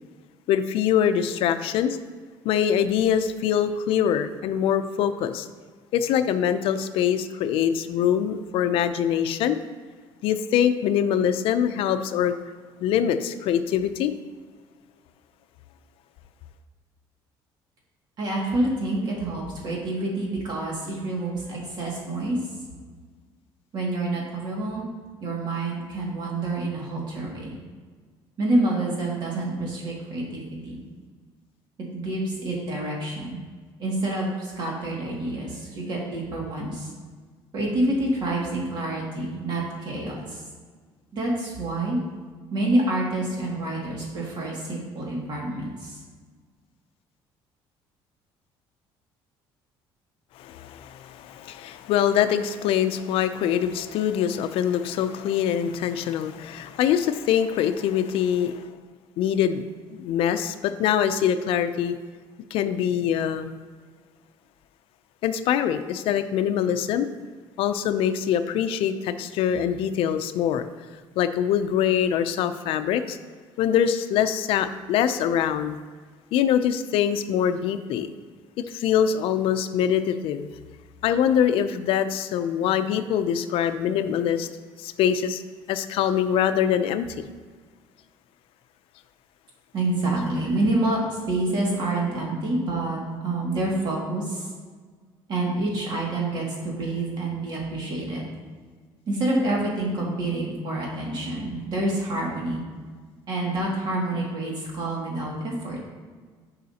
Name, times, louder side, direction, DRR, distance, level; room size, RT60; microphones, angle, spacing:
voice 1, 0.5-2.0 2.4-5.5 5.9-9.6 10.2-12.4 12.8-14.1 50.4-58.6 59.2-59.6 59.9-61.9 62.5-63.6 65.2-67.1 67.6-70.7 71.2-73.2 73.6-75.8 76.3-78.1 78.6-80.5 81.0-84.5 84.8-85.4 85.7-87.2, left 9 dB, 75° left, 10 dB, 0.5 m, -24 dB
voice 2, 18.2-22.4 23.7-24.9 25.2-27.6 28.4-30.8 31.9-33.4 33.8-36.9 37.5-40.4 41.1-42.0 42.5-46.0 89.7-91.0 91.3-94.5 95.3-98.3 99.1-102.6 103.3-105.8, right 2 dB, 50° right, -3 dB, 2.2 m, -27 dB
10.5 x 5.5 x 2.8 m, 1.5 s
cardioid pair, 135°, 10 cm